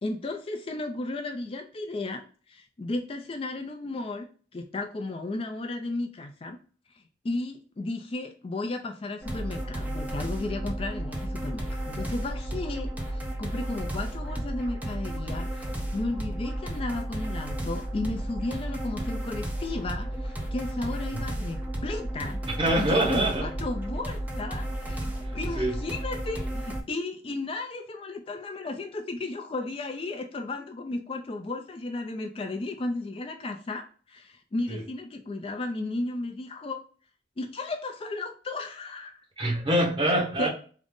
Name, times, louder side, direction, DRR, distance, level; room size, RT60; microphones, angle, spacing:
voice 1, 0.0-6.6 7.2-25.0 25.3-36.8 37.4-39.1 40.0-40.5, left 2 dB, 30° left, 0.4 m, -34 dB
sound 1, 9.2-26.8, right 1 dB, 10° right, 0.6 m, -33 dB
voice 2, 22.5-23.5 25.6-25.8 34.7-34.8 39.4-40.5, right 1 dB, 25° right, 1.1 m, -25 dB
3.7 x 2.0 x 3.4 m
head